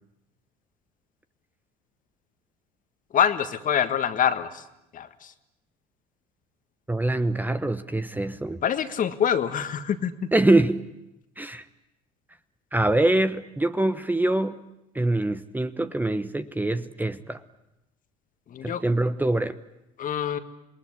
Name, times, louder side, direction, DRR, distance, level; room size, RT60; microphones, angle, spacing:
voice 1, 3.1-4.5 4.9-5.1 8.6-10.3 18.5-18.8 20.0-20.4, left 8 dB, 45° left, 10 dB, 1.7 m, -25 dB
voice 2, 6.9-8.6 10.3-10.8 11.4-11.6 12.7-14.6 14.9-17.4 18.6-19.5, right 2 dB, 10° right, 12 dB, 1.0 m, -24 dB
27.0 x 20.0 x 9.8 m, 0.91 s
hypercardioid pair, 75°, 20 cm